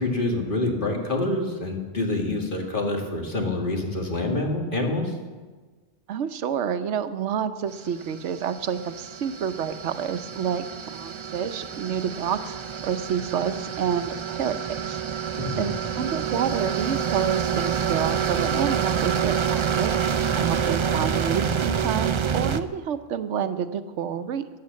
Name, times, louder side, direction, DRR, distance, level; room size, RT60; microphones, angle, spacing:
voice 1, 0.0-5.1 15.4-15.7, left 2 dB, 45° left, 1 dB, 2.3 m, -26 dB
voice 2, 6.1-10.6 10.9-12.6 12.8-15.0 15.6-19.9 20.3-24.5, right 8 dB, 85° right, 12 dB, 1.1 m, -28 dB
sound 1, 7.9-22.6, right 7 dB, 45° right, 0.4 m, -27 dB
13.5 x 9.5 x 7.5 m, 1.4 s
omnidirectional pair, 1.2 m